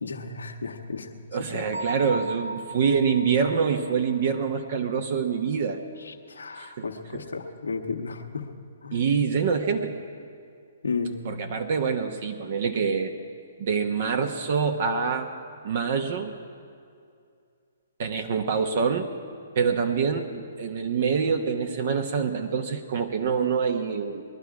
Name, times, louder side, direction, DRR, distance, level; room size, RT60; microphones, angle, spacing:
voice 1, 0.0-1.1 1.5-1.6 6.0-8.5 8.8-9.1 10.8-11.2, left 4 dB, 85° left, 4 dB, 1.2 m, -33 dB
voice 2, 1.3-5.8 6.6-7.2 8.9-9.9 11.2-13.1 13.6-15.3 15.6-16.4 18.0-19.1 19.5-24.2, right 6 dB, 55° right, 5 dB, 1.0 m, -26 dB
Bell, 1.7-5.4, right 2 dB, 80° right, 0.9 m, -37 dB
21.0 x 11.5 x 4.8 m, 2.4 s
hypercardioid pair, 130°, 0 cm